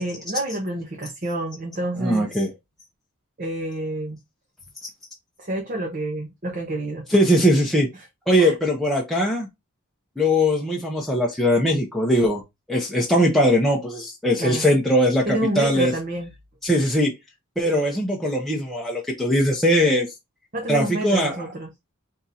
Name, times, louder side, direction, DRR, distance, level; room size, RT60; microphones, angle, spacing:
voice 1, 0.0-2.3 3.4-4.2 5.4-7.0 8.4-8.5 14.4-14.6 15.3-16.3 20.5-21.7, right 1 dB, 40° right, 0.8 m, -28 dB
voice 2, 2.0-2.5 7.1-7.9 8.3-9.5 10.2-12.4 12.7-15.2 15.6-15.9 16.6-17.1 17.6-20.1 20.7-21.3, equal, ahead, 0.7 m, -20 dB
3.6 x 2.7 x 4.1 m
head